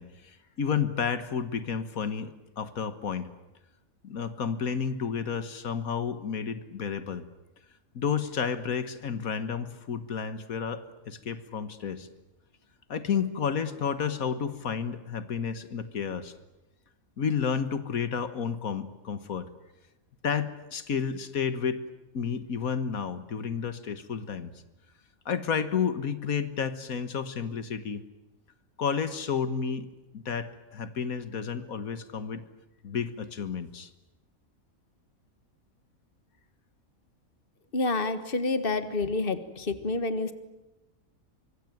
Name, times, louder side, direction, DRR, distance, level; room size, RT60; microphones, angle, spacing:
voice 1, 0.0-3.3 4.0-7.3 8.0-12.1 12.9-16.3 17.2-19.5 20.2-21.8 22.1-24.5 25.3-28.0 28.8-29.9 30.1-32.4 32.8-33.9, left 6 dB, 80° left, 12 dB, 1.8 m, -31 dB
voice 2, 37.7-40.3, left 3 dB, 40° left, 11 dB, 1.8 m, -28 dB
25.0 x 23.5 x 9.2 m, 1.0 s
omnidirectional pair, 1.5 m